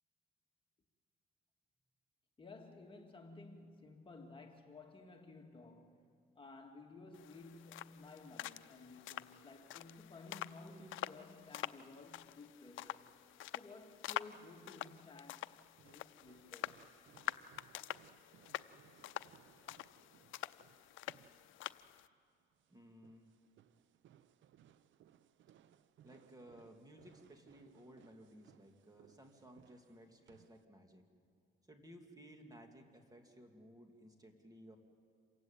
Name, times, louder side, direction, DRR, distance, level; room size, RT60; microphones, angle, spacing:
voice 1, 2.4-13.1 13.5-16.8, left 3 dB, 25° left, 2.5 m, -55 dB
sound 1, 7.1-22.1, left 15 dB, 85° left, 0.6 m, -47 dB
sound 2, 15.7-30.6, right 10 dB, 75° right, 0.8 m, -66 dB
voice 2, 22.7-23.3 26.0-31.0 31.7-34.8, equal, 20° right, 2.8 m, -58 dB
27.5 x 15.5 x 9.1 m
cardioid pair, 90°, 20 cm